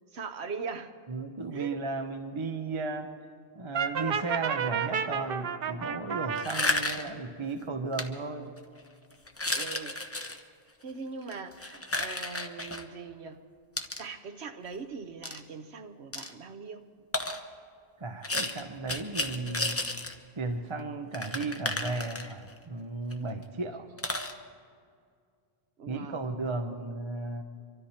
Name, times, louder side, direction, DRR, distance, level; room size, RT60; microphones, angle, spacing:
voice 1, 0.1-0.9 1.5-1.8 9.5-10.0 10.8-13.4 14.0-16.8 25.8-26.3, right 5 dB, 85° right, 8 dB, 1.2 m, -41 dB
voice 2, 1.1-3.1 3.6-8.5 18.0-19.9 20.4-23.9 25.9-27.4, right 3 dB, 30° right, 6 dB, 0.7 m, -35 dB
Brass instrument, 3.7-6.5, right 7 dB, 65° right, 0.9 m, -31 dB
sound 1, 6.4-7.2 7.9-8.0 8.6-8.8 9.3-10.4 11.2-12.8 13.8-14.0 15.2-15.4 16.1-16.3 17.1-17.4 18.2-20.2 20.5-20.6 20.8-20.9 21.1-22.6 23.1-23.2 23.4-23.5 24.0-24.3, left 2 dB, 15° left, 0.8 m, -32 dB
24.5 x 13.0 x 4.3 m, 2.2 s
omnidirectional pair, 1.1 m